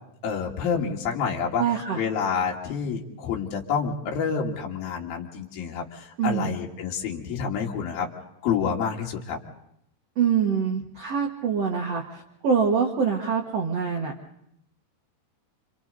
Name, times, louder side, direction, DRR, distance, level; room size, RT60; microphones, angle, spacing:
voice 1, 0.2-1.6 2.0-8.1 8.4-9.4, left 6 dB, 60° left, -1 dB, 3.6 m, -28 dB
voice 2, 1.6-2.0 6.2-6.5 10.2-14.1, right 6 dB, 65° right, 2 dB, 1.5 m, -25 dB
28.0 x 26.5 x 4.1 m, 0.76 s
omnidirectional pair, 5.0 m